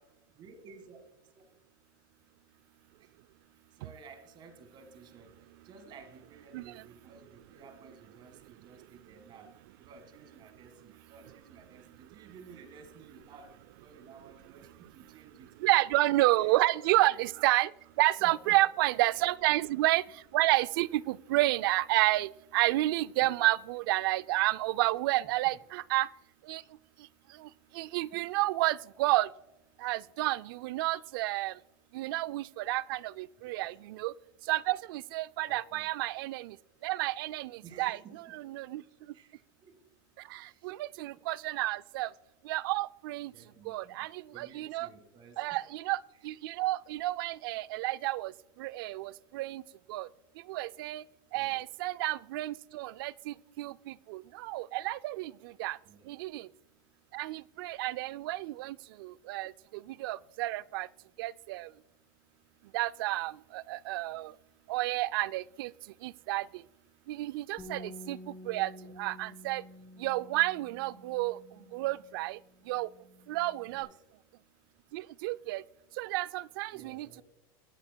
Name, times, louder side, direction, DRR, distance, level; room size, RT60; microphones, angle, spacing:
voice 1, 0.0-1.4 3.0-3.2 3.7-15.6 16.4-16.6 18.2-18.7 19.1-19.3 23.2-23.4 25.2-25.6 28.1-28.3 33.4-33.8 35.5-35.9 37.6-38.3 39.1-39.8 40.5-40.7 41.0-41.3 41.6-41.7 43.3-45.8 46.1-46.3 51.3-51.6 55.4-55.5 55.8-56.1 64.3-64.4 73.7-74.0 76.7-77.2, right 5 dB, 40° right, 1.8 m, -55 dB
voice 2, 15.6-17.7 18.0-20.0 20.3-26.1 26.5-26.6 27.8-29.3 29.8-31.5 31.9-34.1 34.5-36.5 36.8-38.0 38.3-38.8 40.3-42.1 42.5-43.3 43.7-44.9 45.4-46.0 46.2-48.3 48.6-49.6 49.9-50.1 50.5-51.0 51.3-55.3 55.6-55.8 56.1-56.5 57.1-58.8 59.0-59.5 60.0-60.9 61.2-61.7 62.7-64.3 64.7-65.7 66.0-66.5 67.1-68.2 68.5-68.7 69.0-69.6 70.0-71.4 71.7-72.4 72.7-72.9 73.3-73.9 74.9-75.6 76.0-77.1, right 18 dB, 75° right, 0.4 m, -30 dB
Bass guitar, 67.6-73.8, left 1 dB, 15° left, 4.7 m, -50 dB
23.0 x 9.8 x 2.2 m
supercardioid pair, 130°, 12 cm